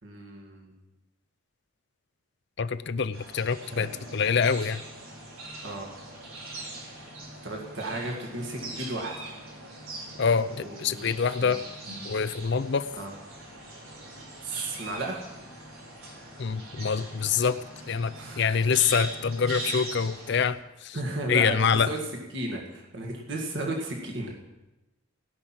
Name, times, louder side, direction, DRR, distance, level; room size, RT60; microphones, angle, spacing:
voice 1, 0.0-0.7 3.7-3.9 5.6-5.9 7.4-9.1 10.6-11.6 13.0-13.1 14.4-15.2 18.1-18.5 20.9-22.0 22.3-24.3, right 2 dB, 55° right, 0 dB, 1.9 m, -34 dB
voice 2, 2.6-4.8 10.2-11.6 12.0-12.9 16.4-17.6 17.9-21.0 21.3-21.9, left 6 dB, 55° left, 14 dB, 0.5 m, -26 dB
sound 1, 3.1-20.5, right 2 dB, 75° right, 4.0 m, -41 dB
17.0 x 6.0 x 8.8 m, 1.0 s
head